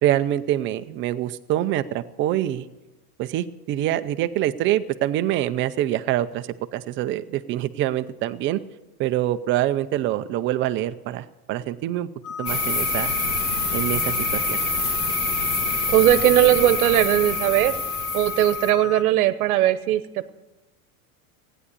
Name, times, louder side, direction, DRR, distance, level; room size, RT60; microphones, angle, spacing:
voice 1, 0.0-2.7 3.2-8.6 9.0-12.1 12.4-13.1 13.7-14.6, right 13 dB, 25° right, 10 dB, 0.6 m, -25 dB
sound 1, 12.2-19.0, left 6 dB, 65° left, 0.9 m, -33 dB
sound 2, 12.5-18.7, left 3 dB, 35° left, 2.0 m, -26 dB
voice 2, 15.9-17.8 18.1-20.3, right 13 dB, 75° right, 11 dB, 1.0 m, -19 dB
15.5 x 10.0 x 8.3 m, 1.0 s
supercardioid pair, 150°, 44 cm